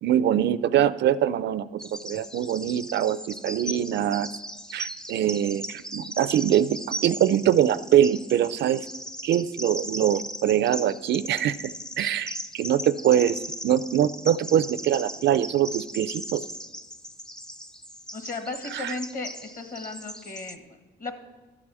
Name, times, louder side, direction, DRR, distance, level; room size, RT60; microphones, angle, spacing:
voice 1, 0.0-4.3 4.7-8.9 9.2-11.7 12.0-16.4 18.7-18.9, right 10 dB, 60° right, 16 dB, 0.4 m, -23 dB
Bird vocalization bird call bird song, 1.8-20.6, equal, 5° left, 0.4 m, -38 dB
voice 2, 18.1-21.2, left 3 dB, 45° left, 7 dB, 1.4 m, -35 dB
12.0 x 4.9 x 7.4 m, 1.2 s
cardioid pair, 90°, 20 cm